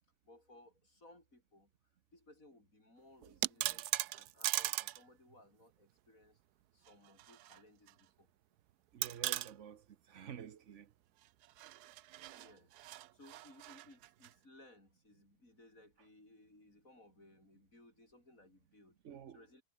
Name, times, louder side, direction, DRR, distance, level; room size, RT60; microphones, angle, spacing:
voice 1, 0.2-1.7 2.1-6.4 6.7-8.3 12.3-12.8 13.1-19.0 19.3-19.6, left 1 dB, 55° left, 8.0 m, -62 dB
sound 1, 3.2-5.0 5.3-5.4 6.9-7.6 7.9-8.0 9.0-9.5 11.4-14.3, right 15 dB, 80° right, 1.2 m, -39 dB
voice 2, 8.9-10.9 19.0-19.4, right 8 dB, 55° right, 1.1 m, -50 dB
omnidirectional pair, 1.7 m